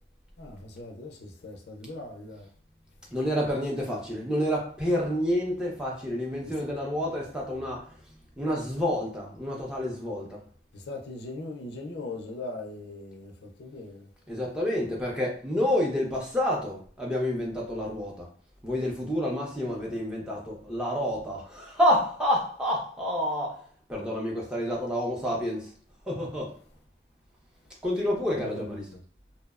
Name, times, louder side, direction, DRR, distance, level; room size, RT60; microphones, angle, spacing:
voice 1, 0.4-2.5 10.7-14.1 28.3-29.0, left 2 dB, 75° left, 0.4 m, -40 dB
voice 2, 3.1-7.8 8.4-10.3 14.3-18.1 18.6-23.5 23.9-25.6 26.1-26.5 27.8-28.8, equal, 5° right, 0.5 m, -28 dB
2.6 x 2.0 x 2.3 m
head